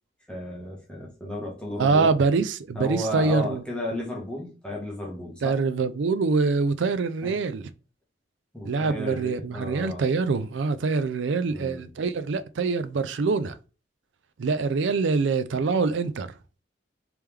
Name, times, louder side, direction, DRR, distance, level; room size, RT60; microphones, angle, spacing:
voice 1, 0.3-2.1 2.8-5.6 7.2-7.3 8.5-10.0 11.5-11.9, left 1 dB, 5° left, 1.0 m, -33 dB
voice 2, 1.8-3.6 5.4-7.7 8.6-13.6 14.4-16.3, right 4 dB, 75° right, 0.4 m, -24 dB
3.3 x 3.0 x 3.5 m
head